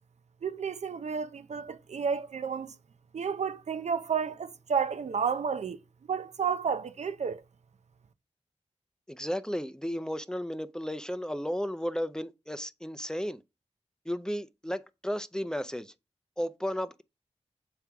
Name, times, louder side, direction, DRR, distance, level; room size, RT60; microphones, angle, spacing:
voice 1, 0.4-2.7 3.1-5.8 6.1-7.4, right 6 dB, 75° right, 0.5 m, -31 dB
voice 2, 9.1-13.4 14.1-15.9 16.4-17.0, equal, 5° left, 0.5 m, -34 dB
7.3 x 4.8 x 3.4 m
wide cardioid pair, 90°, 12 cm